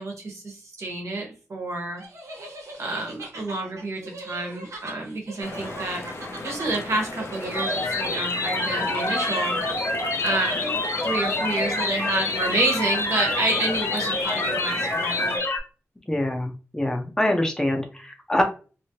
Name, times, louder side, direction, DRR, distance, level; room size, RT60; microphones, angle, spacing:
voice 1, 0.0-2.0 2.8-6.1 6.4-9.9 10.2-10.8 11.0-15.4, right 2 dB, 75° right, 1 dB, 1.2 m, -29 dB
sound 1, 2.0-8.0, right 1 dB, 90° right, 0.9 m, -40 dB
sound 2, 5.4-15.4, left 2 dB, 55° left, 0.5 m, -37 dB
sound 3, 7.5-15.6, left 2 dB, 75° left, 0.9 m, -27 dB
voice 2, 16.1-18.4, left 1 dB, 15° left, 4 dB, 0.6 m, -25 dB
2.9 x 2.7 x 2.9 m, 0.36 s
wide cardioid pair, 125°, 5 cm